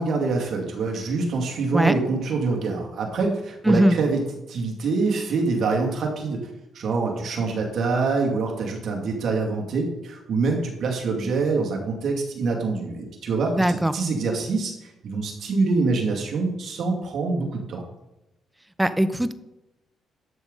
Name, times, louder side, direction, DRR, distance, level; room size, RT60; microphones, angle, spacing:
voice 1, 0.0-6.5 6.7-17.8, right 4 dB, 65° right, 0 dB, 2.4 m, -25 dB
voice 2, 3.7-4.0 13.6-13.9 18.8-19.3, right 1 dB, 5° right, 12 dB, 0.7 m, -19 dB
12.0 x 6.8 x 4.0 m, 0.93 s
cardioid pair, 90°, 0 cm